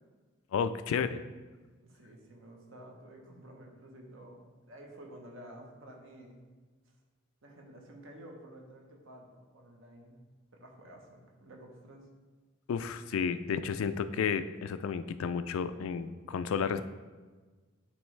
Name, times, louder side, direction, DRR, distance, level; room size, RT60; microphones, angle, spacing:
voice 1, 0.5-1.2 12.7-16.9, left 6 dB, 80° left, 12 dB, 0.3 m, -32 dB
voice 2, 1.8-6.4 7.4-10.2 10.5-12.1, right 1 dB, 70° right, 1 dB, 1.0 m, -51 dB
9.3 x 3.1 x 3.2 m, 1.3 s
head